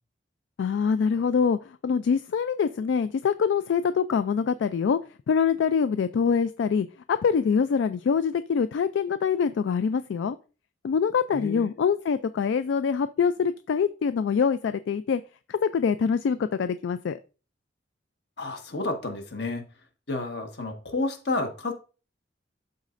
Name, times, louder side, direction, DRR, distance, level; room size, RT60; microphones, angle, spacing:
voice 1, 0.6-5.0 5.3-10.4 10.8-15.2 15.5-17.2, left 6 dB, 80° left, 0.3 m, -24 dB
voice 2, 11.3-11.7 18.4-19.6 20.1-21.7, left 2 dB, 65° left, 1.4 m, -30 dB
12.5 x 4.1 x 2.5 m
head